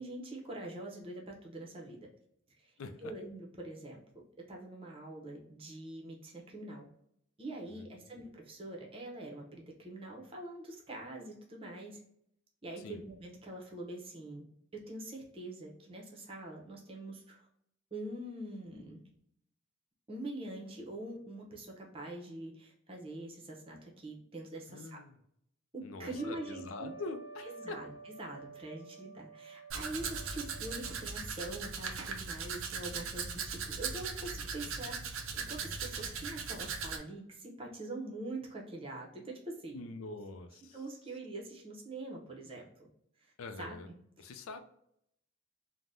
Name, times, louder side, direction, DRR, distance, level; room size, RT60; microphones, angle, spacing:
voice 1, 0.0-2.1 2.5-2.7 3.0-4.0 4.5-6.9 7.4-12.0 12.6-14.5 14.7-17.5 17.9-19.0 20.1-25.0 25.7-27.1 27.4-39.9 40.7-42.9 43.2-43.8 44.2-44.6, right 2 dB, 25° right, -1 dB, 0.6 m, -44 dB
voice 2, 7.7-8.1 12.8-13.0 24.7-25.2 25.8-27.8 39.7-40.8 43.4-43.9 44.2-44.6, left 3 dB, 85° left, 8 dB, 0.4 m, -44 dB
Trumpet, 26.1-31.2, right 4 dB, 30° left, 0.6 m, -51 dB
Domestic sounds home sounds, 29.7-37.0, right 5 dB, 80° right, 0.5 m, -39 dB
3.3 x 2.1 x 2.6 m, 0.73 s
head